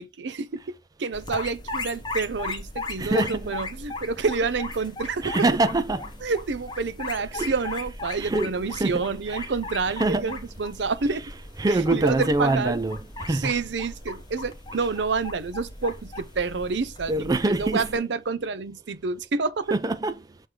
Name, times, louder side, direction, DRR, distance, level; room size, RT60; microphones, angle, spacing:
voice 1, 0.0-5.4 6.2-11.2 11.7-12.8 13.4-19.8, right 4 dB, 75° right, 0.6 m, -28 dB
sound 1, 1.1-18.0, left 3 dB, 25° left, 0.9 m, -37 dB
voice 2, 3.0-3.5 5.2-6.0 7.4-7.5 8.2-9.5 9.9-10.4 11.1-11.3 11.6-13.0 13.3-13.5 14.7-14.9 17.1-18.0 19.7-20.2, right 2 dB, 20° right, 0.4 m, -25 dB
6.3 x 3.1 x 4.9 m
head